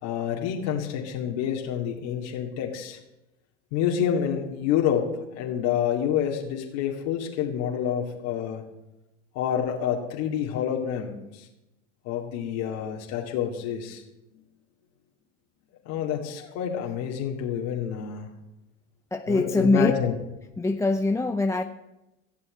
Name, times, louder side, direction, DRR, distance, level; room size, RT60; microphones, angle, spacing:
voice 1, 0.0-3.0 3.7-8.6 9.3-11.5 12.0-14.0 15.8-18.3 19.3-20.2, left 9 dB, 65° left, 0 dB, 2.5 m, -28 dB
voice 2, 19.1-19.9 20.6-21.6, left 2 dB, 10° left, 6 dB, 0.6 m, -23 dB
15.5 x 7.1 x 8.8 m, 0.95 s
hypercardioid pair, 100°, 37 cm